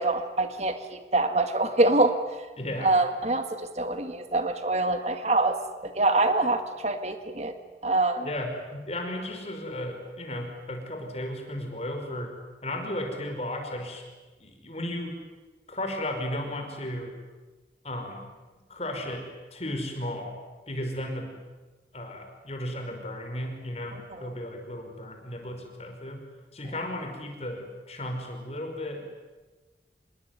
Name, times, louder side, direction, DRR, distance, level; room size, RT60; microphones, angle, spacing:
voice 1, 0.0-2.2 2.8-7.5 7.8-8.3 24.2-24.3, right 2 dB, 40° right, 8 dB, 1.8 m, -25 dB
voice 2, 2.6-3.0 8.2-12.4 12.6-14.1 14.4-15.2 15.7-17.1 17.8-18.3 18.7-20.4 20.7-21.4 21.9-26.3 26.5-29.1, left 1 dB, 35° left, 4 dB, 5.4 m, -34 dB
27.0 x 22.0 x 9.8 m, 1.2 s
head